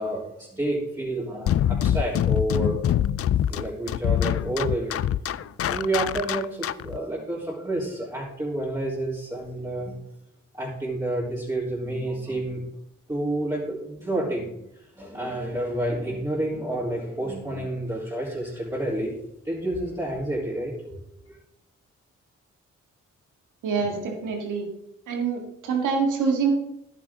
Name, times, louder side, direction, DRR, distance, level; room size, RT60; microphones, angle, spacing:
voice 1, 0.0-2.8 3.5-5.0 5.4-9.9 10.5-12.6 13.1-14.6 15.0-19.1 19.4-21.0 21.3-21.4, right 1 dB, 15° right, -9 dB, 3.6 m, -29 dB
sound 1, 1.5-7.0, left 11 dB, 50° left, 0.4 m, -24 dB
voice 2, 23.6-24.7 25.1-26.5, right 5 dB, 85° right, 2 dB, 2.0 m, -25 dB
11.0 x 9.0 x 3.7 m, 0.79 s
supercardioid pair, 55°, 30 cm